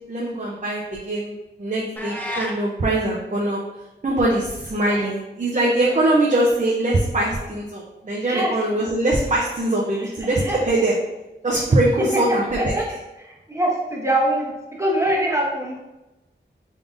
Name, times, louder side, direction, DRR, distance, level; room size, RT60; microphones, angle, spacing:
voice 1, 0.1-3.6 4.0-11.0 11.4-12.7, right 1 dB, 40° right, -4 dB, 0.6 m, -22 dB
sound 1, 2.0-2.6, equal, 10° left, 0.5 m, -30 dB
voice 2, 2.0-2.5 4.9-5.0 8.3-8.5 10.4-10.6 12.7-12.8 13.2-15.8, right 1 dB, 15° right, -3 dB, 0.9 m, -24 dB
3.6 x 3.5 x 2.5 m, 0.99 s
wide cardioid pair, 85°, 19 cm